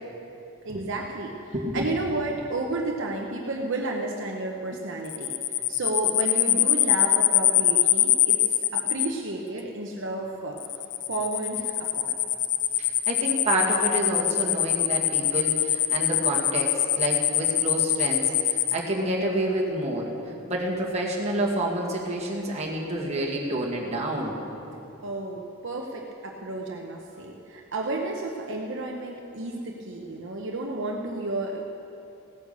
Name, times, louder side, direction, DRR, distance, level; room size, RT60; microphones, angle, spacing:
voice 1, 0.6-5.3 5.7-10.6 11.1-12.1 25.0-31.7, right 2 dB, 60° right, 0 dB, 1.0 m, -32 dB
voice 2, 1.5-1.9 12.8-18.2 18.5-20.1 20.5-24.4, right 1 dB, 30° right, -2 dB, 2.1 m, -28 dB
sound 1, 5.1-9.1 10.6-18.8, left 13 dB, 55° left, 0.6 m, -23 dB
16.5 x 9.7 x 6.8 m, 2.9 s
head